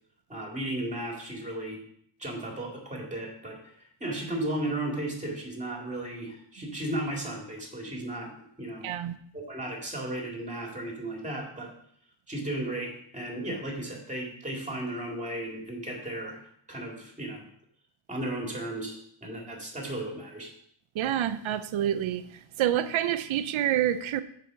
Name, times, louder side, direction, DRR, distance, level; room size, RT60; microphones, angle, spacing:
voice 1, 0.3-1.8 2.2-8.3 8.6-8.9 9.3-11.7 12.3-16.4 16.7-17.4 18.1-20.5, right 1 dB, 15° right, 0 dB, 2.1 m, -35 dB
voice 2, 8.8-9.2 20.9-22.2 22.6-24.2, right 11 dB, 70° right, 12 dB, 0.7 m, -27 dB
7.7 x 4.9 x 5.8 m, 0.66 s
wide cardioid pair, 145°, 50 cm